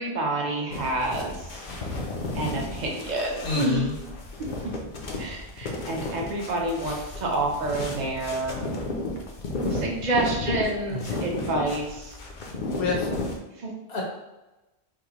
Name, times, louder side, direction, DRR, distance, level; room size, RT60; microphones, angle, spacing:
voice 1, 0.0-1.6 2.3-3.8 4.4-4.7 5.2-8.7 9.7-12.2 13.6-13.7, right 2 dB, 45° right, -1 dB, 0.9 m, -28 dB
sound 1, 0.7-13.4, left 2 dB, 55° left, 0.7 m, -33 dB
voice 2, 3.4-3.9 10.9-11.1 12.6-13.1 13.9-14.0, left 3 dB, 75° left, -1 dB, 1.2 m, -28 dB
4.9 x 2.1 x 2.8 m, 1.0 s
omnidirectional pair, 1.1 m